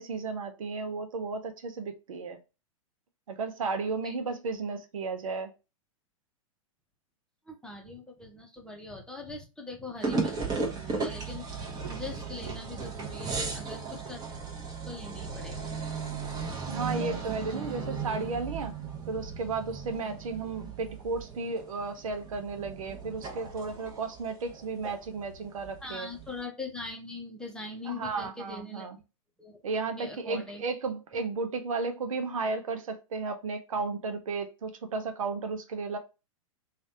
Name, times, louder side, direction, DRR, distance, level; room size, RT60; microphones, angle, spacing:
voice 1, 0.0-2.4 3.3-5.5 16.7-18.7 19.1-26.1 27.9-29.0 29.6-36.0, right 4 dB, 75° right, 0.7 m, -34 dB
voice 2, 7.5-14.2 14.8-15.9 25.8-28.9 29.4-30.6, left 3 dB, 5° left, 0.8 m, -42 dB
sound 1, 10.0-26.4, right 4 dB, 20° right, 1.0 m, -36 dB
3.2 x 2.4 x 2.7 m
hypercardioid pair, 110°, 18 cm